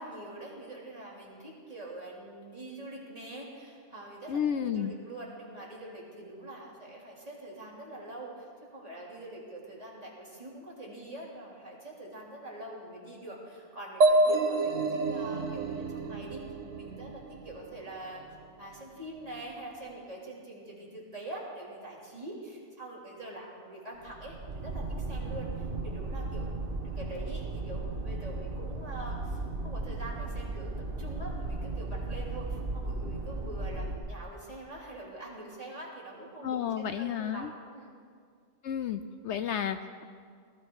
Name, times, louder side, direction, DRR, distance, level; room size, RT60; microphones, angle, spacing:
voice 1, 0.0-16.4 16.7-18.2 18.6-37.9, right 1 dB, 30° right, -5 dB, 3.5 m, -44 dB
voice 2, 4.3-4.9 36.4-37.5 38.6-40.0, left 8 dB, 70° left, 10 dB, 0.9 m, -32 dB
sound 1, 14.0-17.7, right 2 dB, 75° right, 1.4 m, -27 dB
sound 2, 24.0-34.0, right 2 dB, 45° right, 1.4 m, -36 dB
18.5 x 14.5 x 4.8 m, 2.1 s
omnidirectional pair, 1.3 m